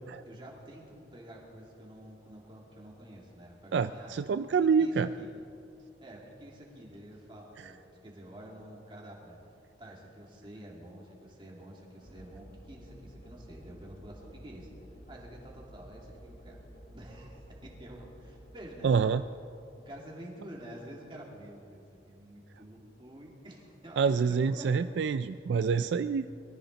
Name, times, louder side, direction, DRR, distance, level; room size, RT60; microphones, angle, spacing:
voice 1, 0.2-4.2 4.6-5.3 6.0-9.4 9.8-14.7 15.1-16.6 16.9-18.9 19.7-24.7 25.6-25.9, right 1 dB, 25° right, -2 dB, 2.7 m, -49 dB
voice 2, 3.7-5.1 18.8-19.2 24.0-26.3, right 6 dB, 70° right, 12 dB, 0.3 m, -27 dB
sound 1, 12.0-20.2, equal, 50° left, 4.2 m, -52 dB
23.0 x 14.0 x 4.0 m, 2.7 s
head